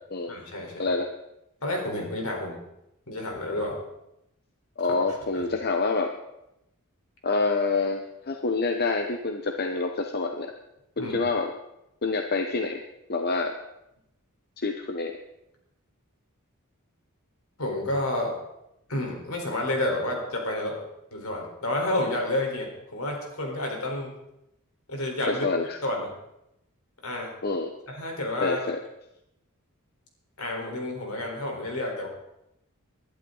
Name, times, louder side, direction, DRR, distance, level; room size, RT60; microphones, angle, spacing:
voice 1, 0.3-0.9 1.6-2.6 3.1-3.8 4.9-5.0 5.3-5.5 11.0-11.1 17.6-18.3 18.9-20.8 21.1-24.2 24.9-25.5 25.8-26.1 27.0-27.3 27.9-28.6 30.4-32.1, left 1 dB, 70° left, 1 dB, 4.2 m, -30 dB
voice 2, 4.8-6.1 7.2-10.5 11.0-11.5 12.0-12.8 13.1-13.6 14.6-15.1 25.3-25.8 27.4-27.7 28.4-28.8, left 3 dB, 45° left, 5 dB, 0.9 m, -27 dB
21.5 x 11.5 x 4.0 m, 0.86 s
head